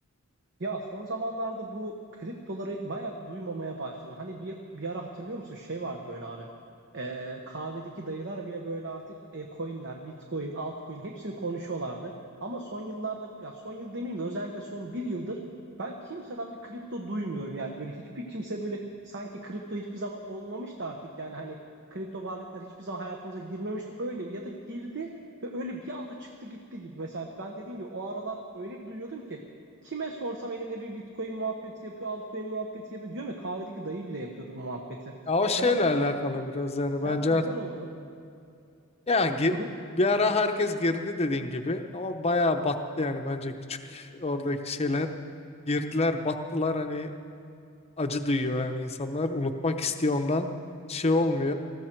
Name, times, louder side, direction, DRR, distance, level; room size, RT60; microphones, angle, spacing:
voice 1, 0.6-6.5 6.9-12.1 12.4-15.4 15.8-21.6 21.9-25.1 25.4-29.4 29.8-35.1 35.6-35.9 37.0-37.9 39.5-39.7, right 2 dB, 55° right, 2 dB, 1.0 m, -36 dB
voice 2, 35.3-37.4 39.1-39.5 39.9-45.1 45.7-47.1 48.0-50.5 50.9-51.5, left 2 dB, 30° left, 6 dB, 0.7 m, -27 dB
19.5 x 14.5 x 4.5 m, 2.6 s
head